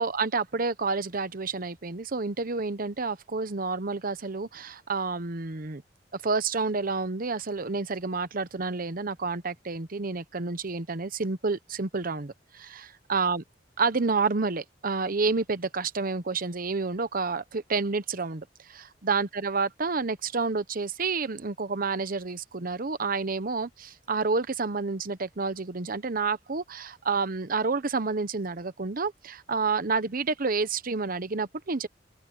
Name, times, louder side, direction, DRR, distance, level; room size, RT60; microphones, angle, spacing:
voice 1, 0.0-5.8 6.1-13.4 13.8-31.9, right 4 dB, 50° right, 1.0 m, -29 dB
open air
head